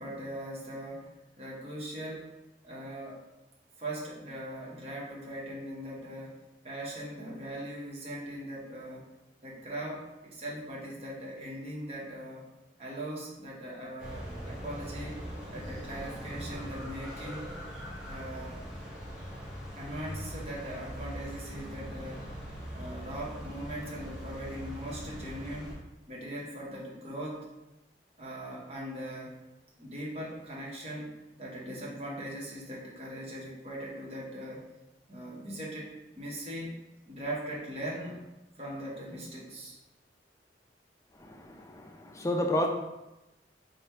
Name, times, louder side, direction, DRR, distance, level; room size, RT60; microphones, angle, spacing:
voice 1, 0.0-2.3 2.6-3.2 3.8-9.0 9.4-12.4 12.8-15.3 15.5-17.6 18.0-18.6 19.7-22.3 22.7-27.5 28.2-29.4 29.8-34.6 35.1-36.8 37.1-38.2 38.5-39.8, right 1 dB, 35° right, -4 dB, 0.8 m, -40 dB
sound 1, 14.0-25.8, equal, 5° right, 0.8 m, -41 dB
voice 2, 41.2-42.7, left 1 dB, 15° left, 2 dB, 0.3 m, -31 dB
3.5 x 2.1 x 4.1 m, 0.98 s
head